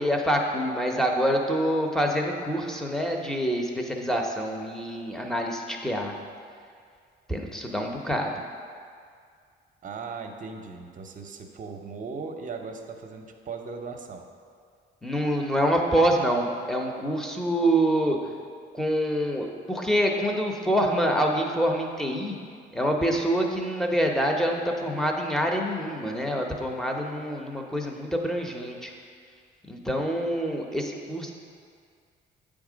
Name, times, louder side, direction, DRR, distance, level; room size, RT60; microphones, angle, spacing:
voice 1, 0.0-6.1 7.3-8.3 15.0-18.2 18.7-22.4 22.7-28.9 29.7-31.3, equal, ahead, 1 dB, 0.8 m, -26 dB
voice 2, 9.8-14.2, right 4 dB, 40° right, 4 dB, 0.7 m, -38 dB
8.0 x 3.7 x 5.1 m, 2.2 s
cardioid pair, 90°, 20 cm